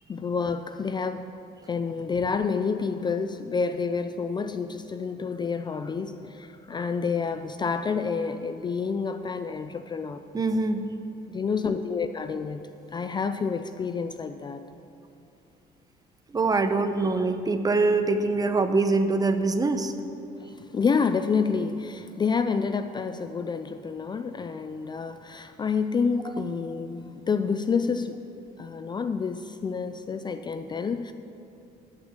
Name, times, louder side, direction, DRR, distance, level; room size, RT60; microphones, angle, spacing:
voice 1, 0.1-1.3 1.7-10.2 11.3-14.6 20.5-28.2 28.6-31.1, left 5 dB, 25° left, 9 dB, 0.4 m, -28 dB
voice 2, 10.3-10.8 16.3-19.9, right 3 dB, 20° right, 8 dB, 0.8 m, -24 dB
13.5 x 6.1 x 8.9 m, 2.7 s
cardioid pair, 110°, 17 cm